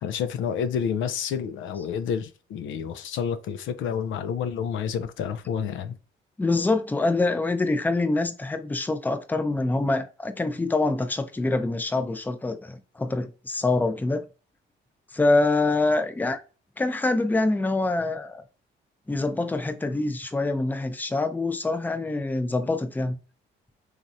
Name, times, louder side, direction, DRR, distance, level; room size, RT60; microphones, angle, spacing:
voice 1, 0.0-6.0, left 7 dB, 80° left, 0.4 m, -29 dB
voice 2, 6.4-14.2 15.1-16.4 16.8-18.4 19.1-23.2, left 2 dB, 10° left, 0.4 m, -25 dB
3.1 x 2.4 x 2.7 m
cardioid pair, 90°, 20 cm